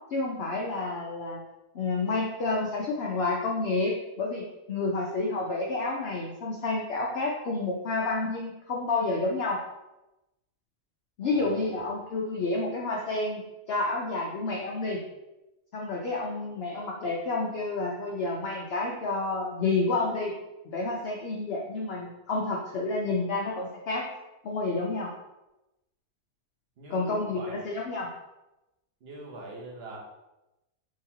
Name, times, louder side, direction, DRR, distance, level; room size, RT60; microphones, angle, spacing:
voice 1, 0.1-1.4 1.7-4.4 4.7-9.6 11.2-15.0 15.7-20.3 20.6-24.0 24.4-25.1 26.9-28.1, left 3 dB, 65° left, -2 dB, 0.6 m, -29 dB
voice 2, 11.2-11.9 26.8-27.5 29.0-30.0, right 2 dB, 50° right, -3 dB, 1.0 m, -42 dB
3.7 x 2.9 x 2.8 m, 0.97 s
omnidirectional pair, 1.5 m